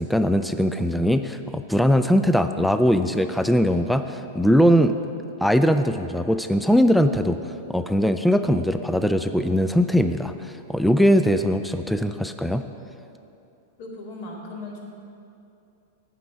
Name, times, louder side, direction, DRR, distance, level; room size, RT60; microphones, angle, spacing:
voice 1, 0.0-5.0 5.4-7.4 7.7-12.6, equal, ahead, 9 dB, 0.4 m, -20 dB
voice 2, 13.8-14.8, left 2 dB, 60° left, -2 dB, 2.3 m, -37 dB
9.3 x 5.1 x 7.9 m, 2.7 s
hypercardioid pair, 105°, 0 cm